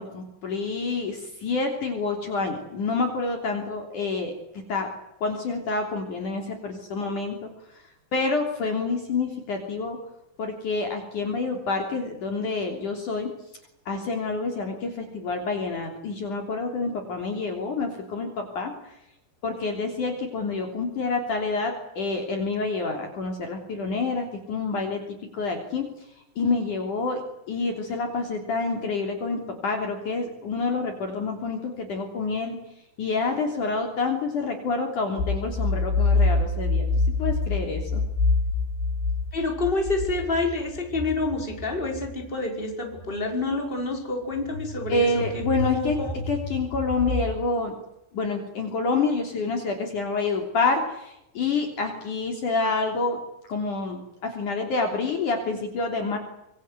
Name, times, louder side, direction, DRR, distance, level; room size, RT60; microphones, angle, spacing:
voice 1, 0.0-4.9 5.2-7.8 8.1-10.0 10.4-13.3 13.9-18.7 19.4-25.9 26.4-27.2 27.5-32.6 33.0-36.9 37.2-38.0 44.9-46.0 46.3-47.7 48.1-53.2 53.5-56.2, left 3 dB, 50° left, 3 dB, 4.5 m, -28 dB
sound 1, 35.2-42.3 42.9-43.2 44.3-47.4, left 3 dB, 80° left, 5.4 m, -27 dB
voice 2, 39.3-45.2 45.6-46.1, left 2 dB, 10° left, 2 dB, 5.2 m, -28 dB
26.0 x 23.0 x 8.2 m, 0.83 s
omnidirectional pair, 4.8 m